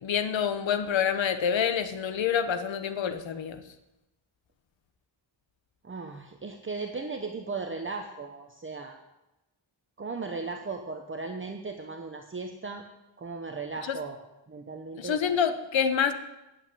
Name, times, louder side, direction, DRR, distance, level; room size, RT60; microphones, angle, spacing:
voice 1, 0.0-3.6 13.9-14.0 15.0-16.1, left 7 dB, 75° left, 9 dB, 1.1 m, -27 dB
voice 2, 5.8-9.0 10.0-12.8 13.2-14.2 14.5-15.2, right 4 dB, 25° right, 4 dB, 0.8 m, -37 dB
8.8 x 8.7 x 8.5 m, 0.97 s
wide cardioid pair, 145°, 46 cm